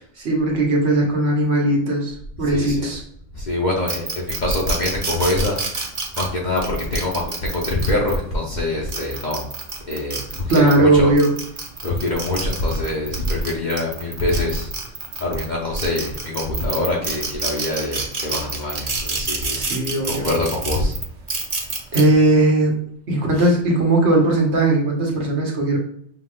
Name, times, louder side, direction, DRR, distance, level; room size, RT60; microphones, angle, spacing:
voice 1, 0.2-2.1 2.4-3.0 10.5-11.3 19.5-20.3 21.9-22.7 23.1-25.8, right 2 dB, 70° right, -1 dB, 1.4 m, -18 dB
voice 2, 2.4-2.9 3.3-5.6 6.1-9.4 9.9-11.1 11.8-14.7 15.2-19.6 20.1-21.0 23.4-23.5, left 2 dB, 45° left, -4 dB, 0.8 m, -24 dB
sound 1, 3.9-8.2 8.7-10.8 11.2-15.4 15.8-22.0, right 3 dB, 40° right, 0.7 m, -28 dB
5.6 x 3.0 x 2.4 m, 0.67 s
omnidirectional pair, 1.2 m